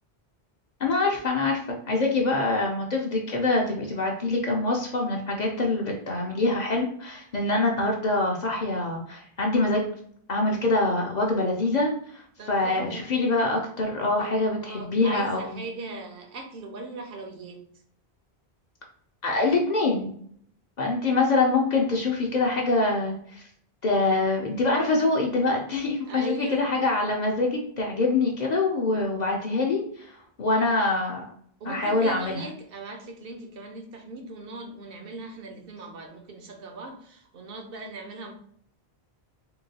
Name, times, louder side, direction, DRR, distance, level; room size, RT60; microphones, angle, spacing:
voice 1, 0.8-9.9 10.3-15.6 19.2-20.1 20.8-23.5 23.8-31.2 31.7-32.4, left 2 dB, 50° left, 0 dB, 0.6 m, -25 dB
voice 2, 12.4-13.1 14.2-17.6 26.1-26.7 30.5-30.6 31.6-38.3, right 3 dB, 65° right, 4 dB, 0.8 m, -39 dB
3.7 x 2.2 x 2.7 m, 0.64 s
omnidirectional pair, 1.1 m